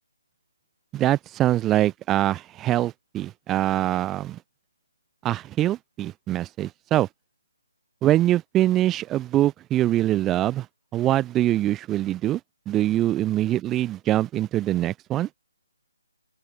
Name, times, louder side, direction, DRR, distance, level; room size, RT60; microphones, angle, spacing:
voice 1, 0.9-4.4 5.2-7.1 8.0-10.7 10.9-12.4 12.7-15.3, right 13 dB, 10° right, 2.3 m, -23 dB
open air
hypercardioid pair, 165°, 0 cm